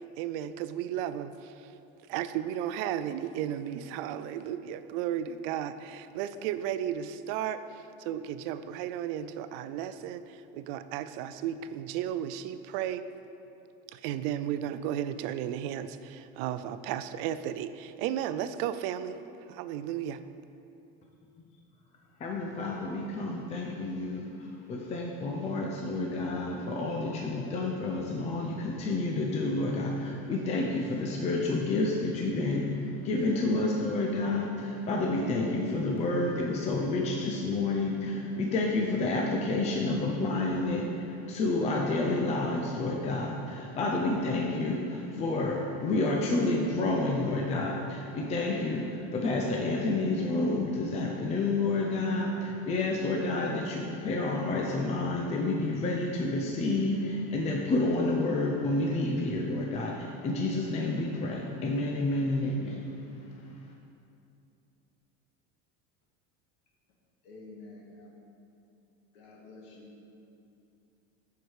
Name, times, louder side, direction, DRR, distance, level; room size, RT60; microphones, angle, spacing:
voice 1, 0.2-1.7 2.1-13.1 13.9-19.2 19.5-20.2, right 10 dB, 70° right, 12 dB, 0.5 m, -34 dB
voice 2, 22.2-62.8 63.3-63.5, left 2 dB, 20° left, -1 dB, 0.5 m, -29 dB
voice 3, 67.2-68.1 69.1-70.0, left 2 dB, 75° left, -2 dB, 2.0 m, -49 dB
12.0 x 4.7 x 4.8 m, 2.7 s
cardioid pair, 165°, 30 cm